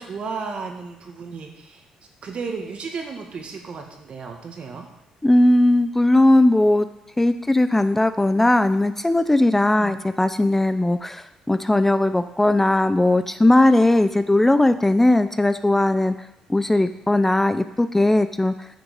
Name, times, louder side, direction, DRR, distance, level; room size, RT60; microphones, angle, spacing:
voice 1, 0.0-1.8 2.2-4.9 9.6-9.9, right 5 dB, 55° right, 3 dB, 1.8 m, -34 dB
voice 2, 5.2-6.9 7.2-16.1 16.5-18.7, left 1 dB, 10° left, 11 dB, 0.5 m, -18 dB
9.6 x 5.8 x 5.5 m, 0.85 s
supercardioid pair, 65°, 2 cm